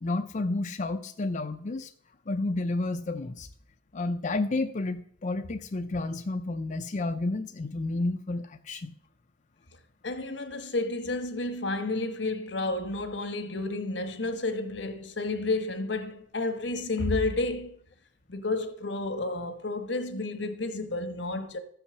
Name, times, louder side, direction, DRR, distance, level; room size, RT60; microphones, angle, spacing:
voice 1, 0.0-1.9 2.3-3.5 3.9-8.9, left 2 dB, 45° left, 0.5 m, -31 dB
voice 2, 10.0-17.8 18.3-21.6, left 2 dB, 80° left, 1.3 m, -31 dB
14.0 x 5.7 x 6.8 m
head